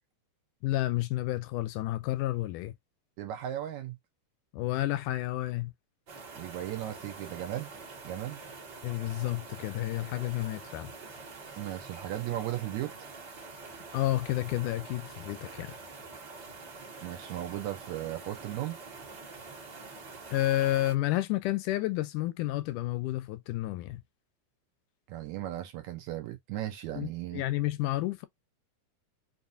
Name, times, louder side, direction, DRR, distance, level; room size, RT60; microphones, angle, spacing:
voice 1, 0.6-2.7 4.5-5.7 8.8-10.9 13.9-15.7 20.3-24.0 27.0-28.3, left 16 dB, 80° left, 2.0 m, -30 dB
voice 2, 3.2-4.0 6.3-7.7 8.0-8.4 11.6-13.1 17.0-18.8 25.1-27.4, right 13 dB, 75° right, 1.8 m, -36 dB
sound 1, 6.1-20.9, right 4 dB, 40° right, 1.8 m, -46 dB
5.5 x 2.5 x 2.5 m
omnidirectional pair, 3.8 m